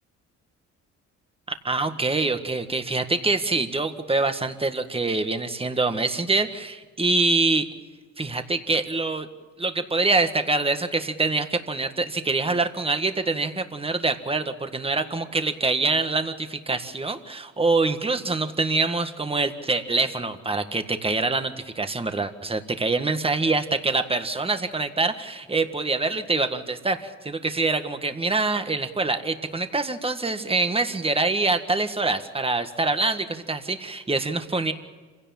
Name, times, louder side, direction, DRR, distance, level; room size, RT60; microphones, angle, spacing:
voice 1, 1.6-7.7 8.2-9.3 9.6-34.7, right 3 dB, 20° right, 8 dB, 1.7 m, -25 dB
26.5 x 17.0 x 7.3 m, 1.4 s
cardioid pair, 90°, 30 cm